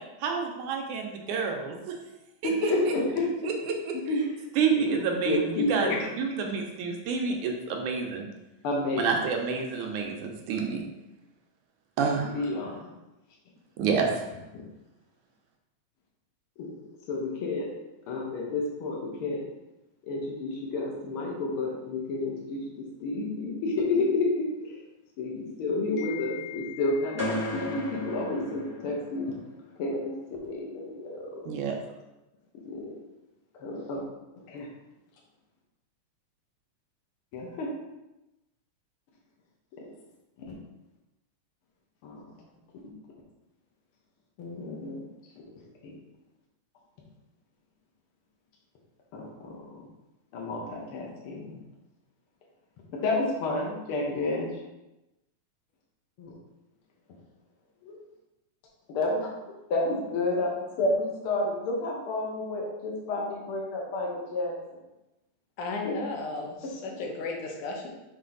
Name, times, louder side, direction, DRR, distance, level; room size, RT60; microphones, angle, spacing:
voice 1, 0.2-2.0 2.4-2.7 3.4-3.9 4.6-5.9 6.2-8.3 9.0-10.8 12.0-12.4 13.8-14.1 31.5-31.8, right 5 dB, 85° right, 2 dB, 2.3 m, -28 dB
voice 2, 2.4-3.3 3.9-4.3 4.7-4.9 5.2-6.0 8.6-9.1 12.3-12.9 14.5-14.6 16.6-16.7 17.1-17.7 18.1-19.4 20.1-24.8 25.2-29.3 29.8-31.6 32.6-32.9 33.5-34.0 34.5-34.7 37.3-37.7 40.5-40.6 42.0-42.2 44.4-45.0 45.8-45.9 49.1-49.8 50.3-51.6 52.9-54.5 56.2-56.4 57.8-58.0 58.9-59.3 59.7-60.5 60.8-64.8 65.8-65.9 66.6-66.7, left 2 dB, 60° left, -3 dB, 1.5 m, -30 dB
sound 1, 27.2-29.3, equal, 15° right, 0.5 m, -34 dB
voice 3, 65.6-67.9, left 3 dB, 85° left, 1 dB, 2.4 m, -34 dB
6.0 x 4.3 x 3.9 m, 0.97 s
omnidirectional pair, 3.5 m